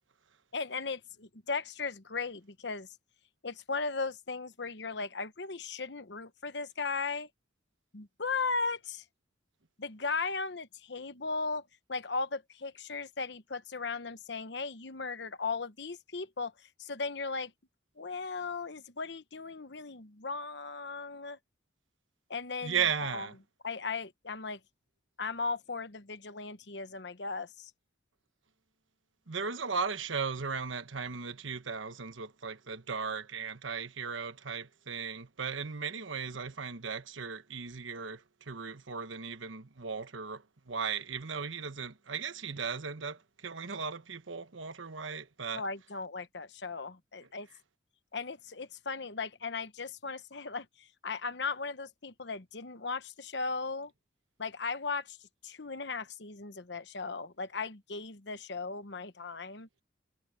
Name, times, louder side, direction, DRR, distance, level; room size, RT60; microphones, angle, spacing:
voice 1, 0.5-2.9 3.4-7.3 7.9-9.0 9.8-17.5 18.0-21.4 22.3-23.3 23.6-24.6 25.2-27.7 45.5-47.5 48.1-53.9 54.4-55.2 55.4-59.7, left 4 dB, 60° left, 1.1 m, -37 dB
voice 2, 22.6-23.3 29.3-45.6, right 6 dB, 85° right, 1.2 m, -36 dB
head